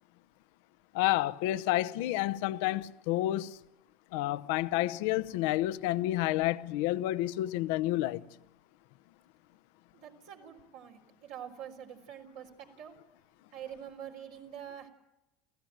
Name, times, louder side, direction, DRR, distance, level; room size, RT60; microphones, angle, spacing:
voice 1, 0.9-3.6 4.1-8.2, left 15 dB, 70° left, 0.8 m, -30 dB
voice 2, 9.9-12.9 13.5-14.9, right 9 dB, 75° right, 4.1 m, -46 dB
28.5 x 15.5 x 9.1 m
hypercardioid pair, 80°, 0 cm